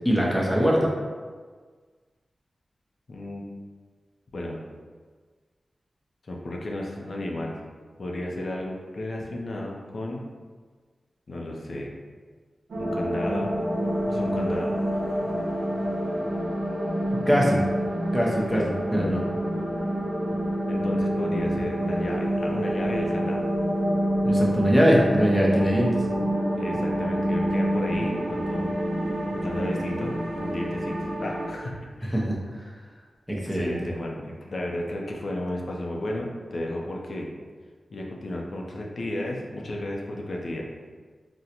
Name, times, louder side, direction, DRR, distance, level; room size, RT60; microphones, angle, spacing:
voice 1, 0.0-0.9 17.3-17.6 18.1-18.6 18.9-19.2 24.2-26.0 32.1-32.4 33.3-33.7, equal, 5° left, -3 dB, 0.6 m, -22 dB
voice 2, 3.1-3.4 4.3-4.6 6.3-7.6 8.0-10.2 11.3-11.9 12.8-13.5 14.1-14.7 18.5-18.7 20.7-23.4 26.5-28.7 29.4-30.1 30.4-32.2 33.4-37.3 37.9-40.7, left 1 dB, 55° left, -1 dB, 0.5 m, -33 dB
sound 1, 12.7-31.5, equal, 80° right, 0.7 m, -27 dB
3.7 x 2.1 x 2.8 m, 1.5 s
wide cardioid pair, 120°, 0 cm